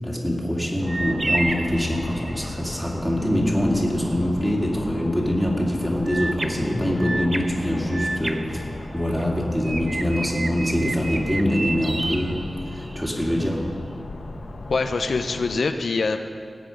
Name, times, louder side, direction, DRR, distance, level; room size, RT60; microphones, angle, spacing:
voice 1, 0.0-8.7 8.9-12.5 12.7-13.6, equal, 5° right, -2 dB, 2.6 m, -24 dB
sound 1, 0.8-15.6, left 2 dB, 60° left, 1.1 m, -37 dB
sound 2, 0.9-2.6 6.1-9.2 9.6-13.1, right 2 dB, 45° right, 0.7 m, -31 dB
voice 2, 14.7-16.2, left 4 dB, 75° left, 7 dB, 0.6 m, -24 dB
18.0 x 8.3 x 5.2 m, 2.2 s
wide cardioid pair, 75°, 0 cm